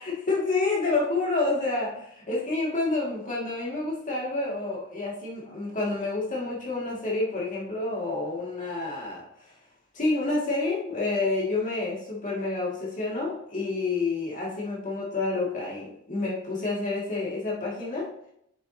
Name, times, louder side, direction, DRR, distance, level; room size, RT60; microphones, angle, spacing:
voice 1, 0.0-9.5 9.9-18.1, left 3 dB, 40° left, -5 dB, 2.4 m, -29 dB
7.7 x 7.3 x 2.9 m, 0.73 s
head